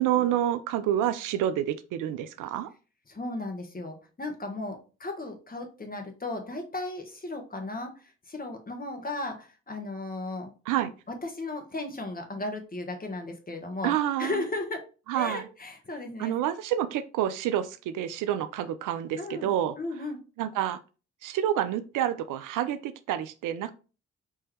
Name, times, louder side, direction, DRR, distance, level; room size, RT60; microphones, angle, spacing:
voice 1, 0.0-2.7 10.7-10.9 13.8-14.3 15.1-15.5 16.2-19.7 20.4-20.8 21.2-23.7, right 11 dB, 65° right, 12 dB, 0.5 m, -28 dB
voice 2, 3.1-10.5 11.2-13.9 14.2-14.8 15.1-16.3 19.2-19.5 19.8-20.2, left 2 dB, 25° left, 4 dB, 1.4 m, -35 dB
4.7 x 2.9 x 3.1 m, 0.34 s
hypercardioid pair, 45°, 34 cm